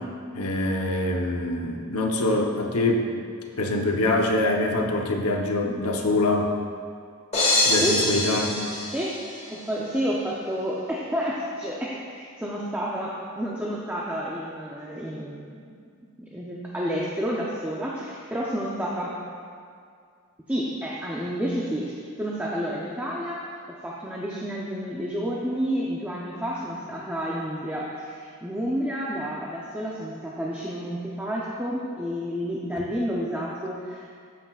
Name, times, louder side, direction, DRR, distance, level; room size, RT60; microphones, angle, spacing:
voice 1, 0.3-3.1 3.6-6.5 7.7-8.7, left 2 dB, 85° left, 2 dB, 0.8 m, -24 dB
sound 1, 7.3-9.6, left 2 dB, 30° left, 1.7 m, -24 dB
voice 2, 9.5-15.7 16.3-19.1 20.5-23.5 23.8-34.1, equal, 10° right, -5 dB, 0.6 m, -30 dB
13.5 x 5.9 x 2.4 m, 2.2 s
head